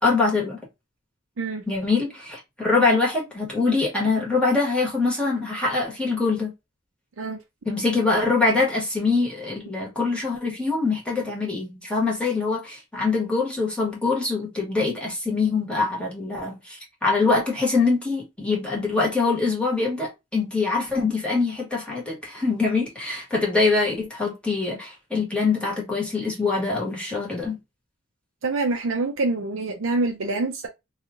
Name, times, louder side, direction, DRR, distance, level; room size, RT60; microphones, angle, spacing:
voice 1, 0.0-0.6 1.7-6.5 7.6-27.6, left 3 dB, 5° left, 1.3 m, -24 dB
voice 2, 28.4-30.7, right 3 dB, 75° right, 0.6 m, -25 dB
2.9 x 2.4 x 3.6 m
head